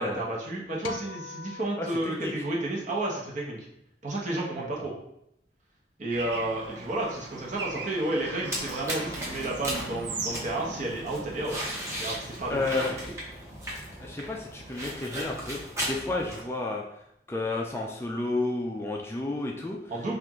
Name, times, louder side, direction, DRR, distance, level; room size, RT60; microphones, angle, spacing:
voice 1, 0.0-3.6 4.0-4.9 6.0-11.6 12.0-12.6 19.9-20.2, right 1 dB, 45° right, -3 dB, 1.0 m, -31 dB
sound 1, 0.8-3.3, left 5 dB, 90° left, 0.4 m, -43 dB
voice 2, 1.8-2.3 12.5-12.9 14.0-16.8 17.3-19.8, left 2 dB, 15° left, 0 dB, 0.3 m, -31 dB
Bird / Traffic noise roadway noise, 6.1-12.9, right 3 dB, 80° right, 0.6 m, -40 dB
sound 2, 8.5-16.4, equal, 15° right, 1.0 m, -36 dB
4.5 x 2.4 x 3.6 m, 0.79 s
head